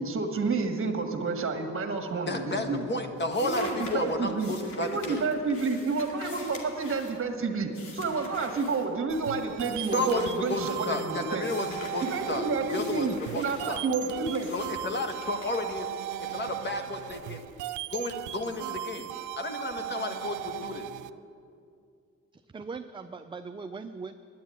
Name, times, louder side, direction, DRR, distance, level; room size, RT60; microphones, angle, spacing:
voice 1, 0.0-2.8 3.4-4.5 4.8-11.5 12.0-14.5, right 4 dB, 45° right, 5 dB, 1.7 m, -30 dB
sound 1, 1.9-2.4 2.6-9.4 9.8-10.9 11.4-16.3, left 3 dB, 80° left, 2.3 m, -47 dB
voice 2, 2.3-5.2 9.9-12.5 12.7-13.8 14.5-15.9 16.3-17.4 17.9-19.1 19.4-20.9, left 2 dB, 35° left, 5 dB, 1.4 m, -32 dB
sound 2, 9.1-21.1, right 13 dB, 80° right, 0.5 m, -38 dB
voice 3, 22.3-24.1, right 4 dB, 15° right, 7 dB, 0.4 m, -40 dB
10.5 x 10.0 x 9.2 m, 2.5 s
cardioid pair, 90°, 30 cm